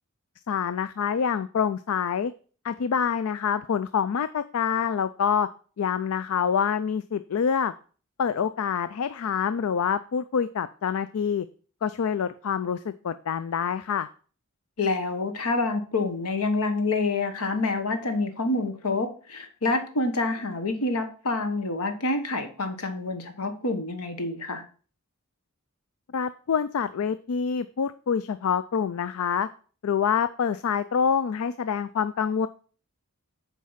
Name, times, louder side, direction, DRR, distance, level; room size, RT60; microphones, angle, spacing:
voice 1, 0.5-2.3 2.6-5.5 5.8-7.7 8.2-11.5 11.8-14.1 26.1-29.5 29.8-32.5, left 7 dB, 75° left, 13 dB, 0.4 m, -26 dB
voice 2, 14.8-24.6, left 3 dB, 90° left, 7 dB, 1.3 m, -27 dB
7.5 x 4.7 x 5.6 m, 0.40 s
head